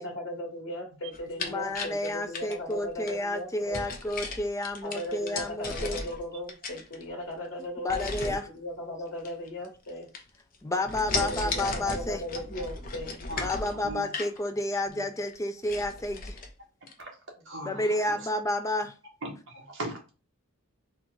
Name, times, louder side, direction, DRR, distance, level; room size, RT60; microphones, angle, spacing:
voice 1, 0.0-3.9 4.8-10.1 11.2-13.2, left 1 dB, 65° left, 1.4 m, -37 dB
sound 1, 1.1-3.2 3.7-6.2 6.5-7.3 7.9-8.4 9.2-9.9 10.1-10.5 10.9-14.4 14.9-15.0 15.3-15.4 15.6-16.5 16.9-17.0, left 3 dB, 40° left, 0.7 m, -36 dB
voice 2, 1.4-6.0 7.8-8.5 10.6-12.2 13.4-16.4 17.6-19.0, left 1 dB, 15° left, 0.4 m, -30 dB
voice 3, 11.1-11.4 13.3-14.0 14.9-15.0 17.0-17.1 17.4-18.1 19.2-20.1, right 2 dB, 60° right, 1.4 m, -40 dB
3.9 x 2.5 x 4.4 m
head